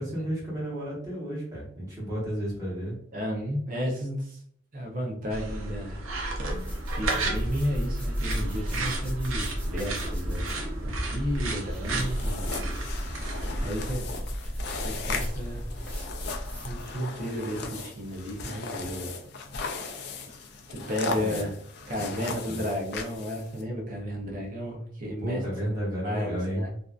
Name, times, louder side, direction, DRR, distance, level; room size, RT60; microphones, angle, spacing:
voice 1, 0.0-3.0 13.4-14.2 21.1-21.5 21.9-22.7 25.2-26.6, right 1 dB, 15° right, -7 dB, 1.0 m, -33 dB
voice 2, 3.1-4.4 4.7-6.0 6.9-10.5 10.8-12.7 12.9-13.1 13.6-14.1 14.8-15.7 16.6-19.1 20.7-21.6 21.9-25.4 26.0-26.7, equal, 40° right, -1 dB, 0.6 m, -33 dB
sound 1, 5.3-13.7, right 2 dB, 80° right, 0.6 m, -33 dB
sound 2, 6.1-17.0, equal, 5° left, 0.6 m, -34 dB
sound 3, 11.9-23.6, left 4 dB, 55° left, 0.3 m, -37 dB
2.6 x 2.2 x 2.4 m, 0.66 s
head